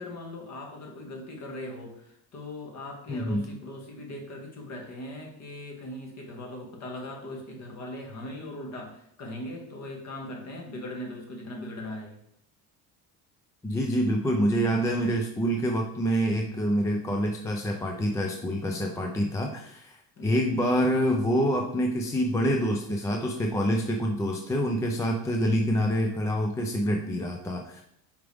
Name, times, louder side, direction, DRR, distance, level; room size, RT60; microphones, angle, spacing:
voice 1, 0.0-12.2 20.2-20.5, left 1 dB, 40° left, 0 dB, 1.9 m, -40 dB
voice 2, 3.1-3.4 13.6-20.0 20.2-27.8, equal, 10° left, 1 dB, 0.4 m, -26 dB
7.9 x 5.1 x 3.5 m, 0.74 s
cardioid pair, 170°, 41 cm